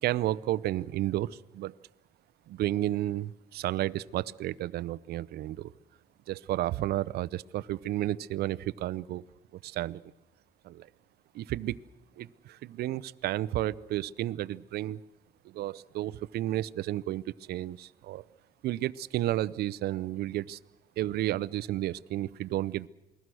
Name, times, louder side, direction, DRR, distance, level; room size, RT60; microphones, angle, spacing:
voice 1, 0.0-1.7 2.5-5.7 6.3-9.2 9.5-10.0 10.6-10.9 11.3-11.8 12.2-15.0 15.4-18.2 18.6-20.6 21.0-22.9, right 14 dB, 70° right, 17 dB, 0.7 m, -32 dB
28.5 x 21.0 x 6.3 m, 1.0 s
cardioid pair, 110°, 17 cm